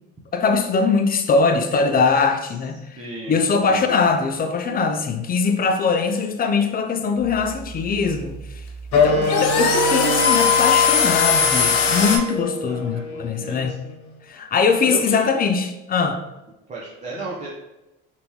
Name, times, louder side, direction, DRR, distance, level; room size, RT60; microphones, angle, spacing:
voice 1, 0.3-3.0 3.3-8.4 9.0-13.8 14.3-16.2, left 5 dB, 30° left, 6 dB, 0.4 m, -21 dB
voice 2, 3.0-3.4 3.7-3.9 9.1-9.5 12.6-13.8 14.8-15.3 16.7-17.5, right 2 dB, 20° right, -5 dB, 0.7 m, -34 dB
sound 1, 7.2-12.2, left 6 dB, 80° left, 0.7 m, -20 dB
Wind instrument woodwind instrument, 8.9-14.0, left 3 dB, 55° left, 1.1 m, -25 dB
3.4 x 2.9 x 2.8 m, 0.99 s
supercardioid pair, 75°, 33 cm